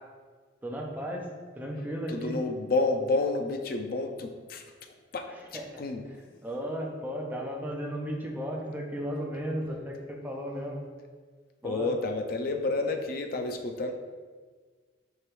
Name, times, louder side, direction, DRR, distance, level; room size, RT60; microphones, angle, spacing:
voice 1, 0.6-2.4 5.3-5.8 6.4-10.8 11.6-11.9, equal, 10° right, -1 dB, 0.5 m, -35 dB
voice 2, 2.1-4.6 5.1-6.1 11.6-13.9, left 3 dB, 50° left, 5 dB, 0.4 m, -30 dB
4.6 x 2.9 x 3.2 m, 1.5 s
head